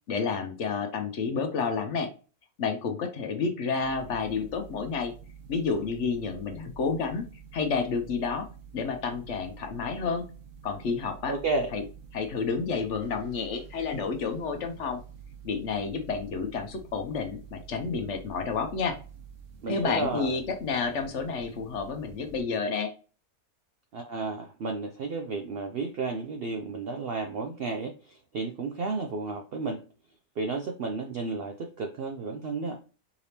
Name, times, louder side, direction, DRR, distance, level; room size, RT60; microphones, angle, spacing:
voice 1, 0.1-2.1 2.6-5.1 5.5-7.2 7.5-8.5 8.7-10.3 10.6-11.3 11.7-11.8 12.1-15.0 15.4-19.0 19.7-22.9, left 5 dB, 60° left, 6 dB, 0.9 m, -30 dB
sound 1, 3.8-22.4, right 7 dB, 60° right, 1.0 m, -48 dB
voice 2, 11.3-11.7 19.6-20.3 23.9-29.8 30.4-32.8, right 3 dB, 90° right, 4 dB, 0.5 m, -32 dB
4.8 x 3.4 x 2.7 m, 0.36 s
omnidirectional pair, 1.6 m